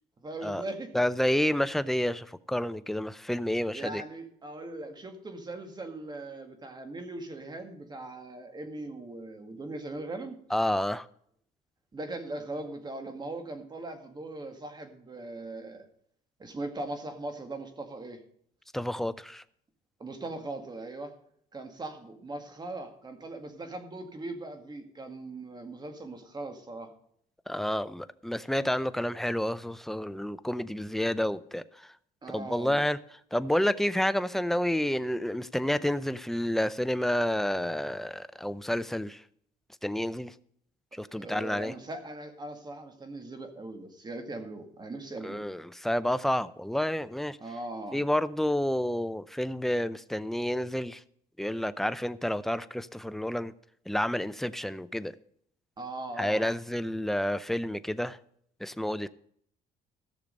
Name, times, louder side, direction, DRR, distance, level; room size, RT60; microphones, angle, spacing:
voice 1, 0.2-0.9 3.7-10.4 11.9-15.8 16.4-18.2 20.0-21.1 21.5-26.9 32.2-32.8 41.1-45.4 47.4-48.0 55.8-56.6, right 2 dB, 25° right, 2.0 m, -40 dB
voice 2, 0.9-4.0 10.5-11.1 18.7-19.4 27.5-31.9 32.3-33.0 33.3-39.2 39.8-40.3 40.9-41.7 45.2-47.4 47.9-51.0 51.4-53.5 53.9-55.1 56.2-58.2 58.6-59.1, left 1 dB, ahead, 0.5 m, -29 dB
15.0 x 6.7 x 5.2 m
cardioid pair, 110°, 17 cm